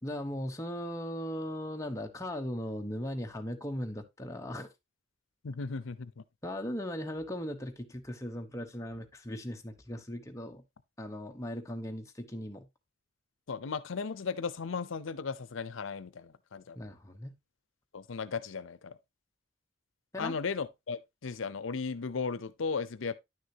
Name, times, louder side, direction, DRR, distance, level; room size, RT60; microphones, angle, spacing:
voice 1, 0.0-4.7 6.4-10.6 11.0-12.7 16.7-17.4 20.1-20.4, equal, 15° left, 0.9 m, -38 dB
voice 2, 5.4-6.2 13.5-16.8 17.9-19.0 20.2-23.1, left 5 dB, 90° left, 0.6 m, -36 dB
10.0 x 6.4 x 2.8 m
head